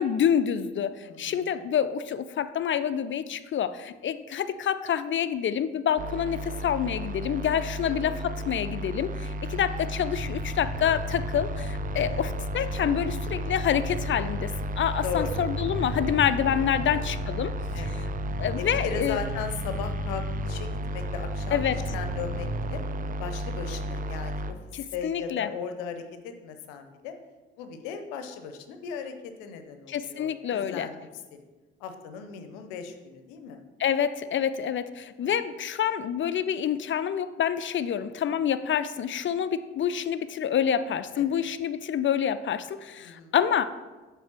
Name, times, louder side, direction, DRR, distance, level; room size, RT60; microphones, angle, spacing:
voice 1, 0.0-17.5 18.4-19.2 21.5-21.8 24.7-25.5 29.9-30.9 33.8-43.6, left 9 dB, 40° left, 13 dB, 0.5 m, -27 dB
voice 2, 1.0-1.5 6.4-6.7 7.8-8.2 9.5-9.9 11.9-12.2 15.0-15.4 16.8-17.0 17.7-18.1 18.6-22.8 23.2-27.1 27.6-31.4 31.8-33.6 35.2-35.3 41.1-41.5 43.0-43.3, left 6 dB, 80° left, 7 dB, 0.7 m, -38 dB
sound 1, 6.0-24.5, right 1 dB, 25° right, 0.5 m, -33 dB
sound 2, 10.1-22.7, left 1 dB, 55° right, 2.1 m, -37 dB
7.2 x 3.4 x 5.9 m, 1.3 s
hypercardioid pair, 45°, 31 cm